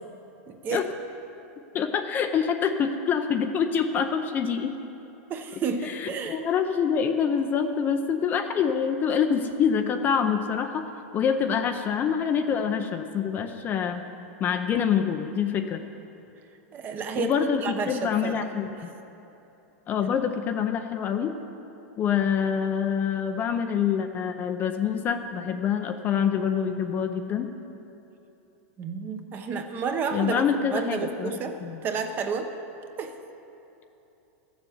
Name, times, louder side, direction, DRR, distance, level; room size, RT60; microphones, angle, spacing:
voice 1, 0.5-0.8 5.3-6.5 16.7-18.5 28.8-30.4 30.7-31.6 31.8-32.5 33.0-33.1, right 5 dB, 25° right, 6 dB, 0.9 m, -30 dB
voice 2, 1.7-4.7 5.9-10.8 11.1-14.0 14.4-15.8 17.2-18.9 19.9-21.3 22.0-27.5 30.1-31.3 31.6-31.8, left 7 dB, 25° left, 6 dB, 0.6 m, -26 dB
13.5 x 7.2 x 7.8 m, 3.0 s
supercardioid pair, 155°, 8 cm